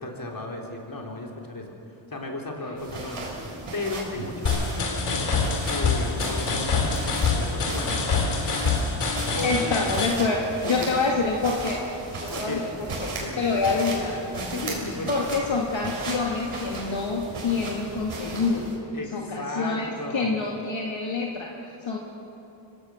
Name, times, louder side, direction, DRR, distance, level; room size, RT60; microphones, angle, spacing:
voice 1, 0.0-1.7 2.1-8.0 8.5-8.6 9.3-9.9 10.6-11.0 12.3-12.7 13.1-13.9 14.3-15.3 18.9-20.4, left 2 dB, 40° left, 1 dB, 3.9 m, -35 dB
sound 1, 2.8-18.8, right 3 dB, 85° right, 4.8 m, -37 dB
sound 2, 4.4-10.1, left 4 dB, 85° left, 3.1 m, -25 dB
voice 2, 9.4-11.8 12.2-14.2 15.1-18.7 19.1-22.0, left 4 dB, 65° left, -1 dB, 2.3 m, -27 dB
24.5 x 17.5 x 6.4 m, 2.9 s
cardioid pair, 55°, 50 cm